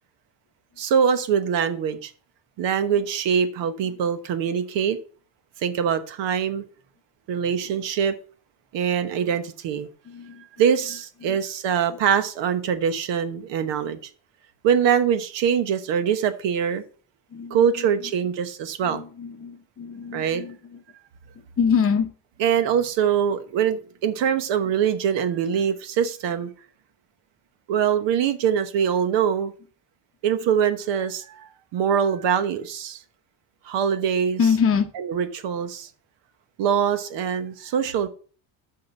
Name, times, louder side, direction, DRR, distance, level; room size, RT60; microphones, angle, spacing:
voice 1, 0.8-2.1 2.6-5.0 5.6-6.6 7.3-8.1 8.7-9.9 10.6-14.1 14.6-16.8 17.5-19.0 20.1-20.4 22.4-26.5 27.7-29.5 30.2-33.0 33.6-34.4 34.9-35.9 36.6-38.1, right 8 dB, 65° right, 1.2 m, -23 dB
voice 2, 10.1-10.4 11.2-11.4 17.3-17.9 18.8-20.8 21.6-22.1 34.4-34.9, left 6 dB, 30° left, 0.8 m, -25 dB
7.6 x 5.9 x 5.4 m
cardioid pair, 160°, 47 cm